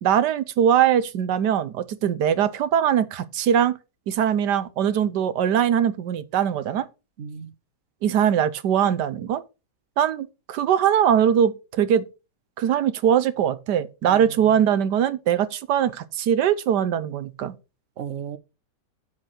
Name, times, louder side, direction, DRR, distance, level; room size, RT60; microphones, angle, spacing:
voice 1, 0.0-3.8 4.1-6.9 8.0-9.4 10.0-12.0 12.6-17.5, right 9 dB, 75° right, 1.3 m, -21 dB
voice 2, 7.2-7.5 14.0-14.6 18.0-18.4, right 7 dB, 55° right, 0.9 m, -35 dB
9.7 x 4.5 x 5.7 m
omnidirectional pair, 1.9 m